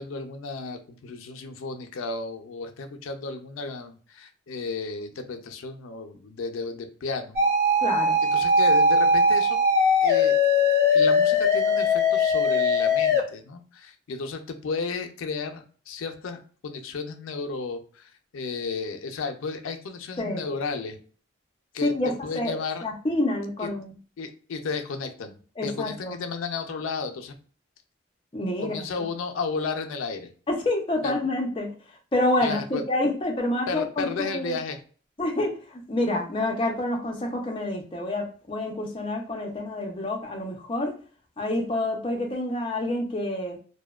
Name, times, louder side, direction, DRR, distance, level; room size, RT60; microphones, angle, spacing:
voice 1, 0.0-7.4 8.3-9.6 10.0-10.3 10.9-21.0 21.7-21.9 22.2-22.8 23.6-23.7 24.2-25.4 25.6-27.3 28.6-30.3 31.0-31.1 32.4-32.8 33.7-34.8, left 4 dB, 90° left, 5 dB, 0.4 m, -33 dB
sound 1, 7.4-13.2, left 2 dB, 55° right, 0.8 m, -20 dB
voice 2, 7.8-8.2 20.2-20.5 21.8-23.9 25.6-26.1 28.3-28.8 30.5-31.7 32.1-34.6 35.2-41.0 41.4-43.6, left 1 dB, 25° left, 0 dB, 0.4 m, -28 dB
2.6 x 2.1 x 2.2 m, 0.41 s
head